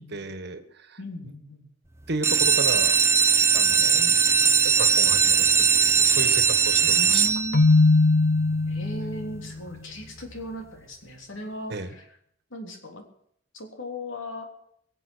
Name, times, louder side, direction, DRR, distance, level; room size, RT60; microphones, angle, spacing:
voice 1, 0.0-1.0 1.2-1.3 2.1-3.0 3.5-4.0 4.6-7.2 11.7-11.9, right 3 dB, 60° right, 9 dB, 1.5 m, -34 dB
voice 2, 1.0-1.7 3.8-4.2 6.8-7.6 8.6-12.1 12.5-13.0 13.5-14.5, left 1 dB, 85° left, 3 dB, 3.4 m, -37 dB
sound 1, 2.1-7.8 8.5-8.9 9.3-9.4 9.7-9.8 10.2-10.3, right 5 dB, 15° right, 0.7 m, -20 dB
Keyboard (musical), 7.5-9.4, left 3 dB, 55° left, 0.7 m, -20 dB
22.5 x 7.8 x 6.2 m, 0.67 s
head